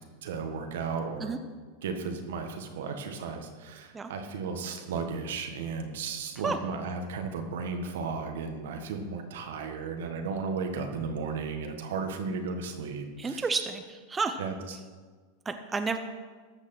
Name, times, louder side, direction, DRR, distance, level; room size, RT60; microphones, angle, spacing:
voice 1, 0.2-1.3 1.8-13.5 14.4-14.8, right 5 dB, 80° right, 5 dB, 1.6 m, -34 dB
voice 2, 13.2-14.4 15.5-16.0, right 4 dB, 15° right, 7 dB, 0.7 m, -31 dB
13.5 x 6.6 x 6.0 m, 1.5 s
supercardioid pair, 130°, 0 cm